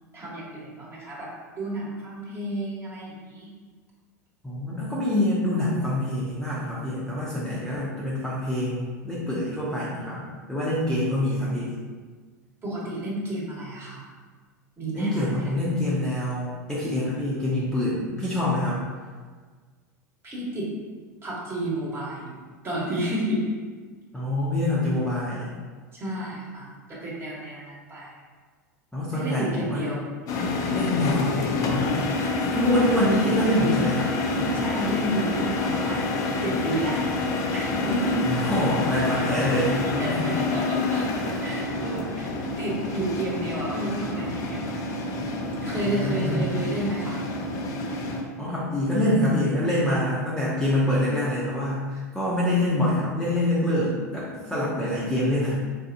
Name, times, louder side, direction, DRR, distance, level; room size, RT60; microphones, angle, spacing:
voice 1, 0.1-3.5 12.6-14.0 14.8-15.6 20.2-20.7 21.2-22.4 22.6-23.5 25.9-28.1 29.1-30.1 34.5-36.1 36.4-37.1 37.5-38.2 39.1-39.4 40.0-44.7 45.6-47.2, right 1 dB, 25° right, -5 dB, 1.3 m, -31 dB
voice 2, 4.4-11.7 14.9-18.8 24.1-25.5 28.9-29.9 30.3-34.5 38.2-40.3 46.0-46.5 48.4-55.5, left 1 dB, 5° left, -8 dB, 0.8 m, -26 dB
sound 1, 30.3-48.2, left 3 dB, 40° left, 0.5 m, -28 dB
4.0 x 2.6 x 2.6 m, 1.5 s
figure-of-eight pair, 85°, 9 cm